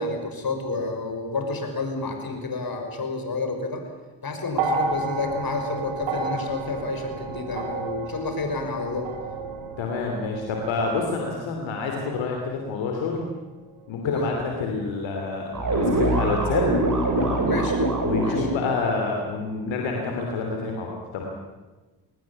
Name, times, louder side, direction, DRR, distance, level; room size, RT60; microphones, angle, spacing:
voice 1, 0.0-3.8 4.2-9.1 14.0-14.3 17.4-17.8 18.2-18.5, left 3 dB, 50° left, 5 dB, 6.0 m, -30 dB
sound 1, 4.5-12.9 13.9-14.0, right 4 dB, 80° right, 3.3 m, -32 dB
voice 2, 9.8-13.3 13.9-16.8 17.2-17.5 18.0-21.2, left 4 dB, 75° left, 1 dB, 3.1 m, -28 dB
sound 2, 15.5-18.7, right 2 dB, 45° right, 6.5 m, -23 dB
22.0 x 19.0 x 8.8 m, 1.2 s
hypercardioid pair, 40°, 46 cm